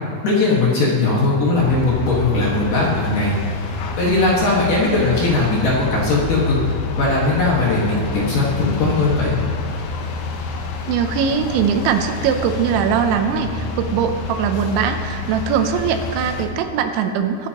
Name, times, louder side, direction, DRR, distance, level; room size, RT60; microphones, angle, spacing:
voice 1, 0.2-3.4 4.0-6.6 7.0-9.4, left 2 dB, 55° left, -5 dB, 2.7 m, -18 dB
sound 1, 1.5-16.5, left 4 dB, 75° left, 2.9 m, -28 dB
voice 2, 10.9-17.5, right 7 dB, 80° right, 7 dB, 3.0 m, -21 dB
20.5 x 9.5 x 3.0 m, 2.5 s
omnidirectional pair, 5.4 m